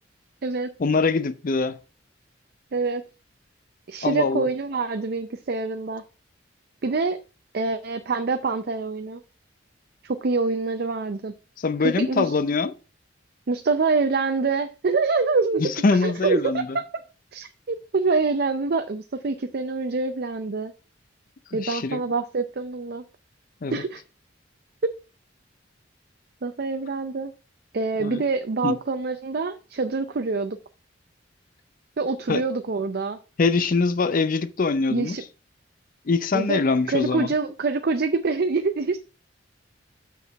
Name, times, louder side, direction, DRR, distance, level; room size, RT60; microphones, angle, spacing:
voice 1, 0.8-1.8 4.0-4.5 11.6-12.7 15.6-16.8 21.5-22.0 23.6-23.7 28.0-28.2 28.6-28.8 32.3-32.5 33.4-35.2 36.1-37.3, left 4 dB, 45° left, 0.5 m, -23 dB
voice 2, 2.7-3.0 3.9-6.0 6.8-7.2 7.5-9.2 10.0-11.3 11.8-12.3 13.5-16.6 17.3-20.7 21.5-23.0 23.7-24.0 24.8-24.9 26.4-27.3 27.7-30.6 32.0-33.2 34.9-35.2 36.3-36.6 36.9-39.0, right 4 dB, 55° right, 0.5 m, -25 dB
6.2 x 5.7 x 5.1 m
head